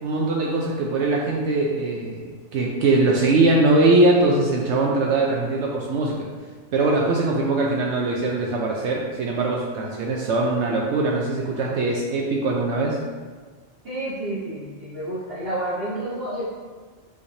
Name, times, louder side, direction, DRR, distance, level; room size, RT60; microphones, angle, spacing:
voice 1, 0.0-6.1 6.7-13.0, right 2 dB, 70° right, -2 dB, 0.8 m, -21 dB
voice 2, 13.8-16.4, right 1 dB, 50° right, -10 dB, 1.5 m, -29 dB
5.6 x 3.3 x 2.7 m, 1.5 s
omnidirectional pair, 1.3 m